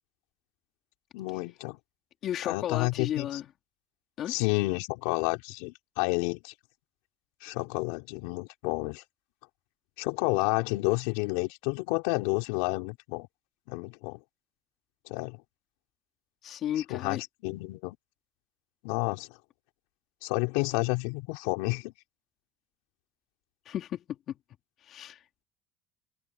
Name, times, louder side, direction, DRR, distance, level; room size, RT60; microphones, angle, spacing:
voice 1, 1.1-1.8 2.4-3.4 4.3-6.5 7.4-9.0 10.0-13.3 13.7-14.2 15.1-15.4 16.9-18.0 18.8-19.3 20.2-21.9, left 25 dB, 80° left, 4.6 m, -30 dB
voice 2, 2.2-3.5 4.2-4.3 16.4-17.2 23.7-24.4 24.8-25.2, left 11 dB, 50° left, 3.5 m, -34 dB
supercardioid pair, 105°, 0 cm